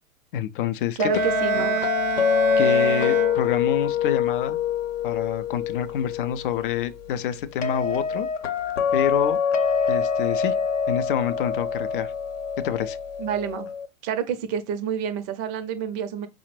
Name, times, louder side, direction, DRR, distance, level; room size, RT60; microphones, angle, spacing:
voice 1, 0.3-1.1 1.5-1.6 2.6-4.6 5.0-8.3 8.9-9.4 9.9-10.6 10.9-12.1 12.6-13.0, left 9 dB, 45° left, 0.4 m, -27 dB
sound 1, 1.0-13.9, left 7 dB, 60° left, 0.8 m, -25 dB
voice 2, 1.0-1.8 13.2-13.7 14.0-16.3, right 8 dB, 30° right, 0.5 m, -28 dB
Bowed string instrument, 1.1-3.8, right 7 dB, 90° right, 0.6 m, -28 dB
5.0 x 2.1 x 3.0 m
figure-of-eight pair, 105°, 40 cm